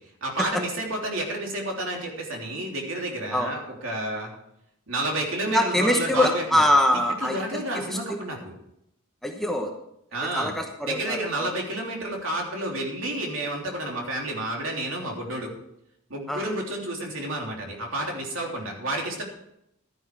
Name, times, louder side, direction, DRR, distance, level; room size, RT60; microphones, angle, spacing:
voice 1, 0.2-4.3 4.9-6.6 7.2-8.5 10.1-10.5 10.8-15.5 16.1-19.2, right 1 dB, 60° right, 0 dB, 3.3 m, -30 dB
voice 2, 5.5-8.2 9.2-9.7 10.3-11.5 16.3-16.5, left 1 dB, ahead, 2 dB, 1.0 m, -24 dB
13.0 x 10.5 x 4.7 m, 0.77 s
head